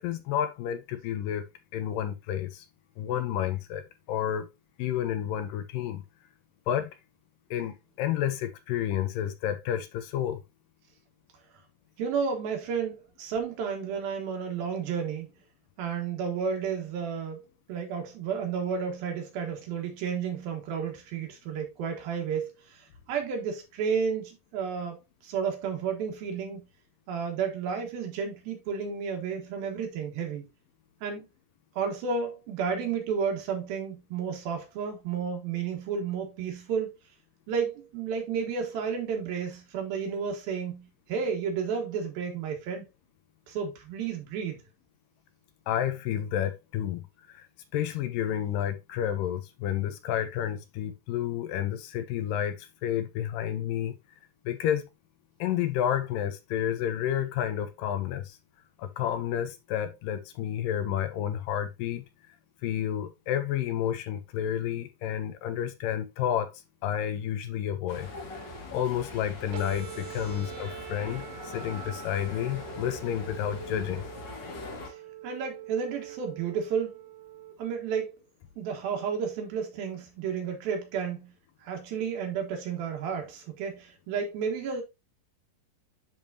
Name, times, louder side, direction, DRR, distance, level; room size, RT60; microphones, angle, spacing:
voice 1, 0.0-1.4 1.7-2.7 3.0-4.5 4.8-6.0 6.7-6.9 7.5-10.4 45.7-47.5 47.7-54.0 54.5-54.8 55.4-58.4 58.8-62.1 62.6-68.1 68.7-74.1, left 10 dB, 80° left, 2.3 m, -30 dB
voice 2, 12.0-15.3 15.8-26.6 27.1-30.5 31.0-31.3 31.8-36.9 37.5-42.8 43.5-44.6 74.9-75.0 75.2-77.0 77.6-78.2 78.6-81.3 81.6-84.8, right 6 dB, 85° right, 3.3 m, -32 dB
sound 1, 67.9-74.9, left 3 dB, 55° left, 1.2 m, -42 dB
sound 2, 69.5-77.5, right 11 dB, 65° right, 2.7 m, -44 dB
10.5 x 3.5 x 2.7 m
omnidirectional pair, 4.1 m